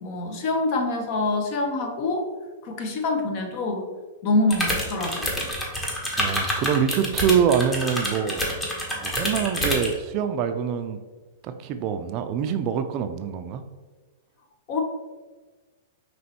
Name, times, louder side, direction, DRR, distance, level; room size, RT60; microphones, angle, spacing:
voice 1, 0.0-2.3 2.6-3.9 4.2-5.3 14.7-14.8, left 2 dB, 45° left, 3 dB, 0.8 m, -25 dB
sound 1, 4.5-9.9, equal, 15° left, 1.0 m, -27 dB
voice 2, 6.2-8.4 8.9-11.0 11.4-13.6, right 7 dB, 40° right, 9 dB, 0.3 m, -25 dB
5.2 x 3.0 x 2.9 m, 1.3 s
hypercardioid pair, 120°, 0 cm